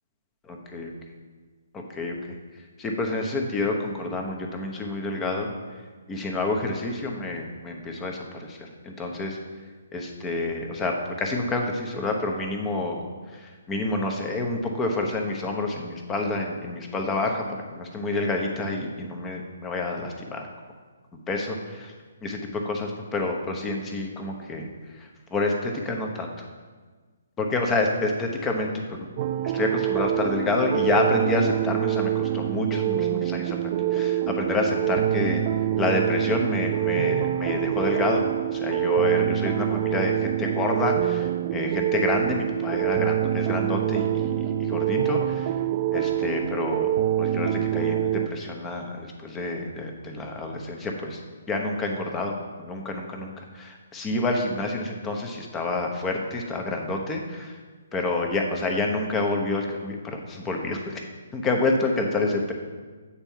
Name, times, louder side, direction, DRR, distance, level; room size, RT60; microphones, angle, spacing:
voice 1, 2.8-5.5 6.1-9.4 9.9-13.1 13.3-20.5 21.3-21.9 22.2-24.7 25.0-26.3 27.4-29.1 29.4-35.4 35.8-38.2 38.5-45.5 45.9-46.9 47.2-51.2 51.5-57.6 57.9-62.5, left 2 dB, 15° left, 2 dB, 1.0 m, -28 dB
sound 1, 29.2-48.3, right 12 dB, 35° right, 0.3 m, -25 dB
8.6 x 4.5 x 6.7 m, 1.4 s
figure-of-eight pair, 130°, 0 cm